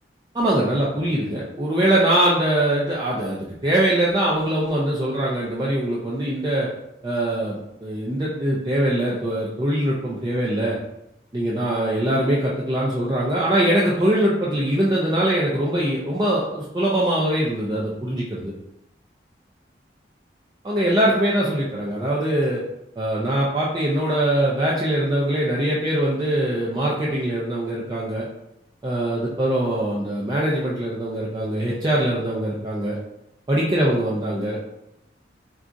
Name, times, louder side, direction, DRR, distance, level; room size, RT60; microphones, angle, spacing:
voice 1, 0.3-6.7 7.0-10.8 11.3-18.5 20.6-22.6 23.0-28.3 28.8-33.0 33.5-34.6, right 1 dB, 25° right, -5 dB, 0.4 m, -22 dB
2.4 x 2.3 x 3.8 m, 0.84 s
head